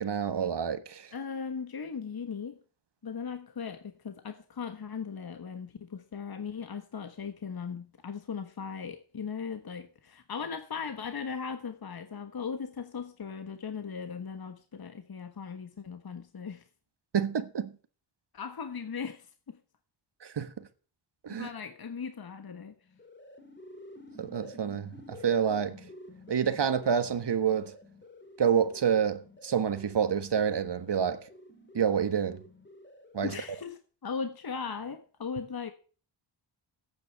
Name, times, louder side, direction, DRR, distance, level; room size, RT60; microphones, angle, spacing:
voice 1, 0.0-1.1 17.1-17.8 20.2-20.7 21.2-21.5 24.2-25.8 26.3-27.7 28.4-31.2 31.7-32.4 33.1-33.3, right 7 dB, 55° right, 1.4 m, -28 dB
voice 2, 1.1-2.6 3.0-16.6 18.3-19.6 21.3-22.7 33.2-35.7, left 6 dB, 45° left, 1.4 m, -38 dB
sound 1, 22.8-33.4, left 1 dB, 20° left, 2.7 m, -50 dB
8.9 x 8.0 x 9.1 m
cardioid pair, 70°, 49 cm